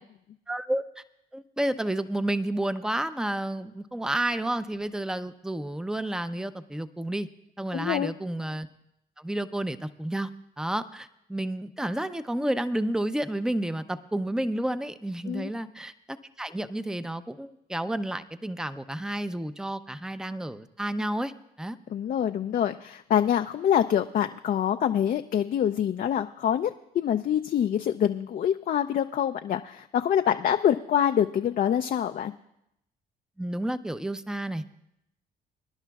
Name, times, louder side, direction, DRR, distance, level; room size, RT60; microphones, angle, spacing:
voice 1, 0.5-1.0 1.3-7.3 7.6-8.7 9.2-10.3 10.6-21.3 21.6-21.8 33.4-34.6, right 1 dB, 5° right, 11 dB, 0.6 m, -31 dB
voice 2, 7.7-8.1 15.3-15.5 21.9-32.3, left 9 dB, 50° left, 7 dB, 0.5 m, -25 dB
25.0 x 10.5 x 2.4 m, 0.80 s
supercardioid pair, 70°, 18 cm